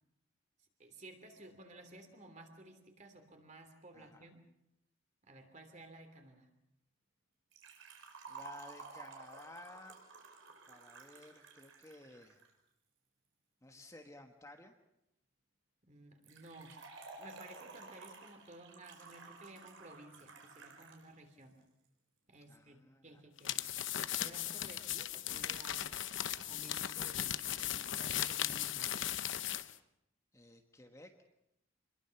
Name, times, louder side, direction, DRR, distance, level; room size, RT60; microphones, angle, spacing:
voice 1, 0.8-4.4 5.2-6.5 15.8-16.8 17.2-21.6 22.3-23.6 24.2-25.9 26.5-29.0, right 2 dB, 35° right, 6 dB, 3.1 m, -55 dB
voice 2, 3.9-4.3 8.3-10.0 10.7-12.4 13.6-14.7 22.5-23.2 30.3-31.1, left 1 dB, 15° left, 4 dB, 1.4 m, -55 dB
Liquid, 7.5-12.5 16.2-21.0 21.3-21.4 22.3-22.4, right 4 dB, 75° right, 4.9 m, -53 dB
sound 1, 23.4-29.7, left 11 dB, 70° left, 0.9 m, -37 dB
27.0 x 21.5 x 5.9 m, 0.84 s
head